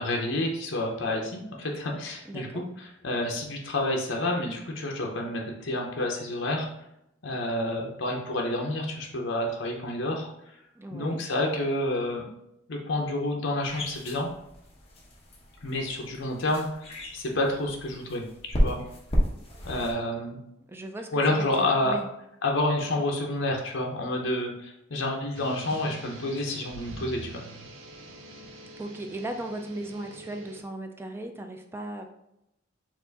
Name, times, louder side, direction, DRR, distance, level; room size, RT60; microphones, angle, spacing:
voice 1, 0.0-2.5 3.0-6.7 7.2-10.3 10.9-12.3 12.7-14.3 15.6-16.7 17.1-18.8 19.6-20.4 21.1-21.9 22.4-27.4, left 1 dB, 65° left, 0 dB, 0.8 m, -29 dB
voice 2, 2.2-2.6 10.8-11.2 20.7-22.1 28.8-32.1, right 1 dB, 10° right, 5 dB, 0.4 m, -37 dB
sound 1, 13.6-19.9, equal, 30° left, 0.9 m, -32 dB
sound 2, 25.3-30.6, right 2 dB, 70° right, 0.7 m, -45 dB
4.5 x 2.5 x 4.0 m, 0.82 s
head